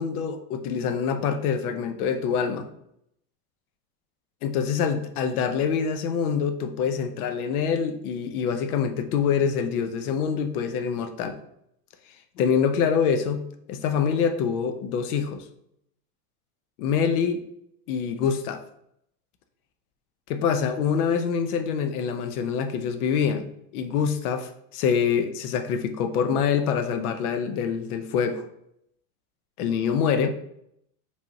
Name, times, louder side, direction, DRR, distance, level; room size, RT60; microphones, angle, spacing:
voice 1, 0.0-2.7 4.4-11.4 12.4-15.5 16.8-17.4 17.9-18.6 20.3-28.5 29.6-30.3, left 6 dB, 75° left, 8 dB, 0.7 m, -25 dB
5.1 x 3.4 x 2.7 m, 0.75 s
supercardioid pair, 175°, 44 cm